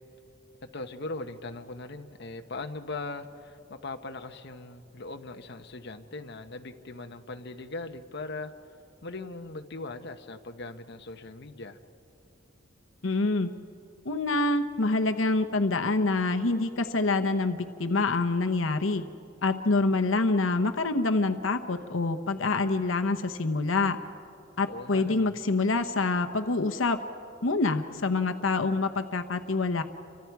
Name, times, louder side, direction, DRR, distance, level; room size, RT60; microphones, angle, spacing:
voice 1, 0.7-8.5 9.0-11.8 24.7-25.4, left 3 dB, 60° left, 6 dB, 1.1 m, -39 dB
voice 2, 13.0-13.5 14.0-19.0 19.4-24.0 24.6-27.0 27.4-29.8, left 3 dB, 90° left, 7 dB, 1.0 m, -26 dB
29.5 x 25.0 x 4.7 m, 2.7 s
head